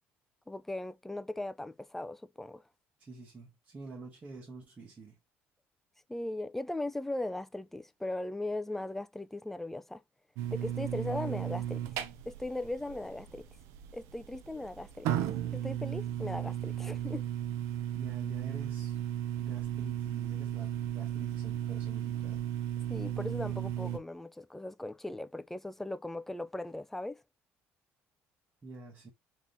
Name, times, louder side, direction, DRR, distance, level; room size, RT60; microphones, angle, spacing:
voice 1, 0.5-2.6 6.1-10.0 10.5-11.8 12.3-13.5 13.9-15.1 15.5-17.3 22.9-27.2, left 1 dB, 5° left, 0.3 m, -38 dB
voice 2, 3.0-5.2 17.9-19.0 19.4-22.4 28.6-29.1, right 3 dB, 25° right, 1.1 m, -48 dB
sound 1, 10.4-24.0, right 11 dB, 85° right, 0.5 m, -35 dB
3.6 x 3.0 x 2.6 m
cardioid pair, 115°, 5 cm